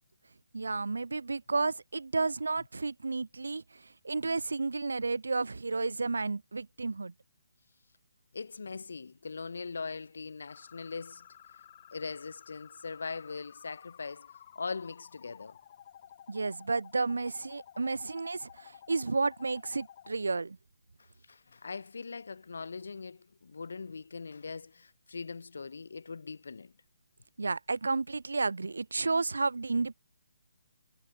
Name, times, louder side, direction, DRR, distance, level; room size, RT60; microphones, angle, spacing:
voice 1, 0.5-3.6 4.0-7.1 16.3-20.6 27.4-29.9, right 3 dB, 90° right, 0.7 m, -32 dB
voice 2, 8.3-11.3 11.9-15.6 21.0-26.7, left 4 dB, 75° left, 4.0 m, -41 dB
sound 1, 10.5-20.1, left 10 dB, 40° left, 5.7 m, -54 dB
hypercardioid pair, 155°, 0 cm